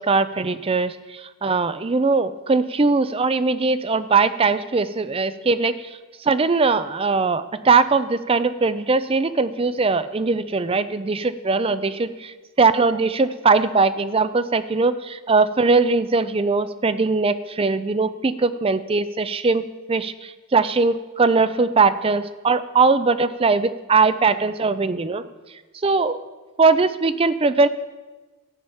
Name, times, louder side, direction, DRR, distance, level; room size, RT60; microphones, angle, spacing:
voice 1, 0.0-5.9 6.2-12.3 12.6-25.2 25.8-26.2 26.6-27.7, right 4 dB, 25° right, 13 dB, 0.4 m, -20 dB
13.5 x 8.7 x 5.6 m, 1.2 s
head